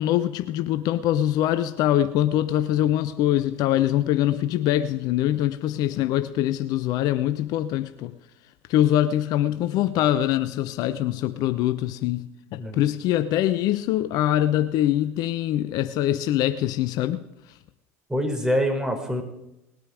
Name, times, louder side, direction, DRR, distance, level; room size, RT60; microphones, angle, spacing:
voice 1, 0.0-8.1 8.7-17.2, left 12 dB, 55° left, 0.8 m, -23 dB
voice 2, 18.1-19.2, equal, 10° right, 4.0 m, -25 dB
20.0 x 9.5 x 5.0 m
hypercardioid pair, 75°, 8 cm